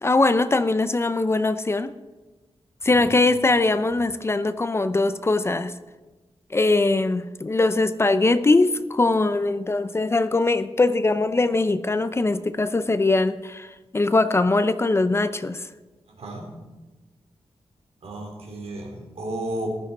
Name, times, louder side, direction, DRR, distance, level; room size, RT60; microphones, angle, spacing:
voice 1, 0.0-1.9 2.8-5.7 6.5-15.7, left 2 dB, 25° left, 12 dB, 0.4 m, -21 dB
voice 2, 16.1-16.5 18.0-19.9, right 1 dB, 75° right, 1 dB, 3.1 m, -33 dB
15.0 x 12.5 x 4.1 m, 1.2 s
wide cardioid pair, 165°, 11 cm